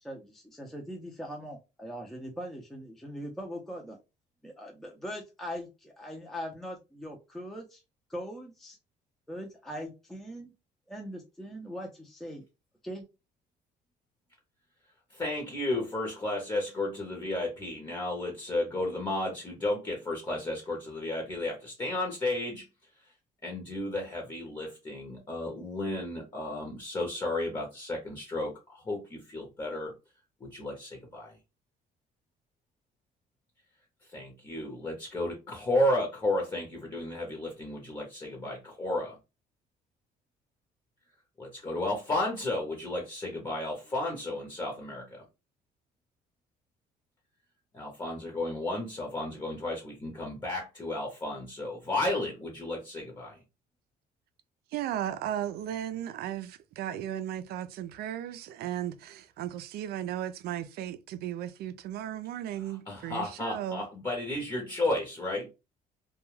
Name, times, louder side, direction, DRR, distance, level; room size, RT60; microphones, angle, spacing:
voice 1, 0.0-4.0 4.4-7.8 8.1-8.8 9.3-10.5 10.9-12.4 12.8-13.0, equal, ahead, 0.6 m, -41 dB
voice 2, 15.1-22.6 23.4-29.9 30.4-31.3 34.1-39.2 41.4-45.2 47.7-53.4 62.7-65.5, left 1 dB, 25° left, 0.9 m, -33 dB
voice 3, 54.7-63.8, right 11 dB, 70° right, 0.4 m, -35 dB
2.3 x 2.2 x 3.2 m
cardioid pair, 110°, 17 cm